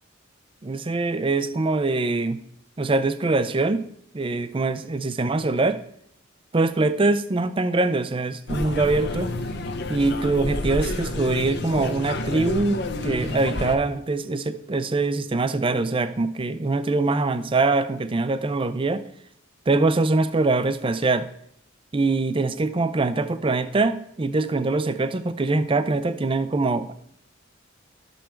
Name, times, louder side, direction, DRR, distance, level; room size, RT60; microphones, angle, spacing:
voice 1, 0.6-2.4 2.8-3.8 4.1-5.8 6.5-9.3 9.9-19.0 19.7-21.3 21.9-26.9, right 3 dB, 25° right, 12 dB, 0.5 m, -23 dB
sound 1, 8.5-13.7, left 2 dB, 60° left, 0.8 m, -29 dB
12.5 x 5.4 x 4.4 m, 0.69 s
head